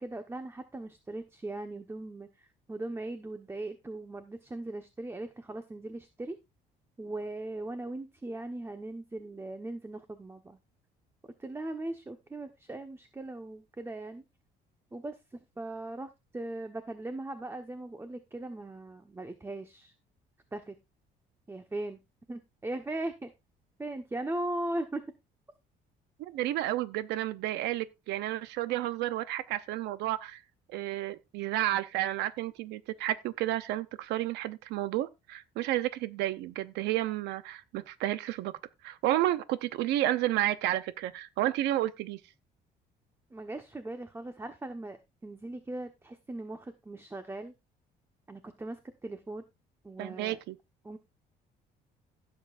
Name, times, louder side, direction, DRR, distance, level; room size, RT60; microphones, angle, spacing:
voice 1, 0.0-6.4 7.0-10.6 11.4-14.2 14.9-19.9 20.5-20.8 21.5-22.0 22.3-23.3 23.8-25.0 43.3-47.5 48.3-49.4 49.8-50.4 50.8-51.0, right 2 dB, 15° right, 1.2 m, -39 dB
voice 2, 26.2-30.4 30.7-38.5 38.8-42.2 50.0-50.6, right 14 dB, 90° right, 0.8 m, -31 dB
16.0 x 7.8 x 2.6 m
cardioid pair, 110°, 17 cm